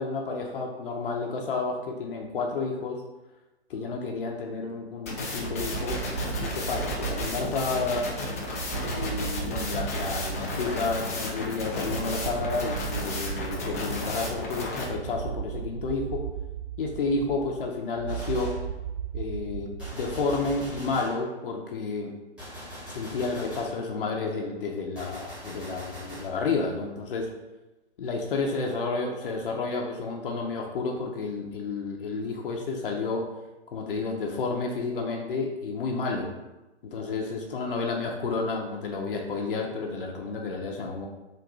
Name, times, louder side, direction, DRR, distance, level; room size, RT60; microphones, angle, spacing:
voice 1, 0.0-3.0 3.7-6.0 6.4-8.1 8.8-16.2 16.8-18.6 19.1-22.1 22.9-27.3 28.0-33.3 33.7-36.3 36.8-41.1, left 4 dB, 55° left, 0 dB, 0.7 m, -31 dB
sound 1, 5.1-14.8, left 2 dB, 15° left, 0.3 m, -33 dB
sound 2, 5.4-21.0, right 9 dB, 60° right, 0.5 m, -37 dB
Gunshot gunfire, 18.1-18.7 19.8-21.3 22.4-23.8 25.0-26.4, equal, 5° right, 1.0 m, -42 dB
3.9 x 2.6 x 4.7 m, 1.0 s
figure-of-eight pair, 125°, 34 cm